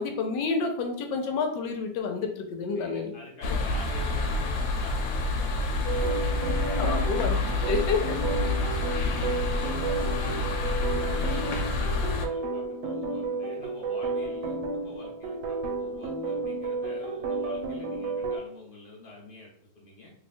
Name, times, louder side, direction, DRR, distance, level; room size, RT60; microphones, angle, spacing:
voice 1, 0.0-3.1 6.7-8.0, left 4 dB, 75° left, 4 dB, 1.2 m, -29 dB
voice 2, 2.7-7.4 8.7-20.1, left 2 dB, 45° left, -3 dB, 0.7 m, -47 dB
sound 1, 3.4-12.3, left 2 dB, 90° left, 1.3 m, -28 dB
sound 2, 5.8-18.4, right 3 dB, 80° right, 1.4 m, -32 dB
3.2 x 2.3 x 4.2 m, 0.68 s
omnidirectional pair, 2.0 m